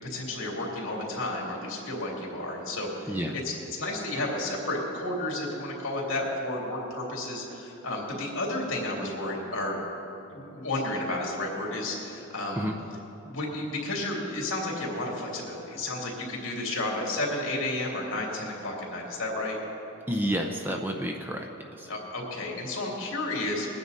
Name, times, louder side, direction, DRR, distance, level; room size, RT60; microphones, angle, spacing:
voice 1, 0.0-9.8 10.3-12.7 13.2-19.6 21.9-23.7, left 2 dB, 65° left, -2 dB, 3.0 m, -32 dB
voice 2, 20.1-21.9, equal, 10° right, 2 dB, 0.6 m, -30 dB
21.5 x 9.6 x 4.1 m, 3.0 s
head